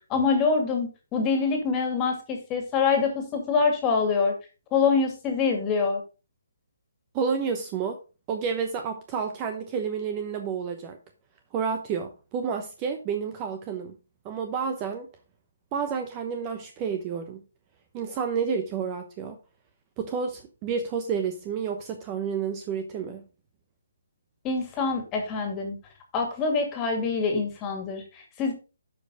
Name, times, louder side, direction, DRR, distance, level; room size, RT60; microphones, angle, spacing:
voice 1, 0.1-4.3 4.7-6.0 24.4-25.8 26.1-28.5, left 5 dB, 20° left, 2.2 m, -25 dB
voice 2, 7.1-8.0 8.3-11.0 11.5-13.9 14.2-15.1 15.7-17.4 17.9-19.4 20.0-23.2, right 6 dB, 20° right, 0.8 m, -30 dB
11.5 x 5.2 x 4.0 m
hypercardioid pair, 160°, 0 cm